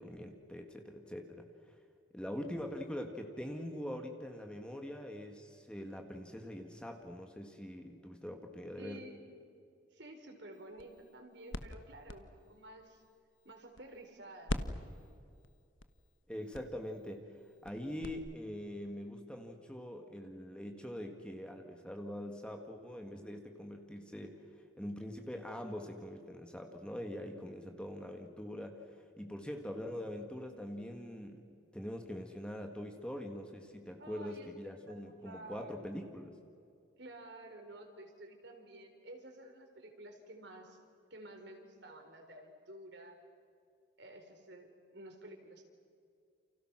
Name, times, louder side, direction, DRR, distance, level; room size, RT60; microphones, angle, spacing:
voice 1, 0.0-1.8 2.1-9.0 16.3-31.4 31.7-36.4, equal, 5° left, 3 dB, 1.9 m, -43 dB
voice 2, 8.8-9.3 9.9-13.0 13.4-14.6 27.6-27.9 34.0-34.5 34.9-35.8 37.0-40.8 41.1-43.2 44.0-45.6, right 1 dB, 60° right, 4 dB, 4.3 m, -52 dB
sound 1, 10.5-14.1 14.5-18.1, left 1 dB, 75° left, 1.4 m, -44 dB
29.5 x 29.5 x 6.2 m, 2.4 s
head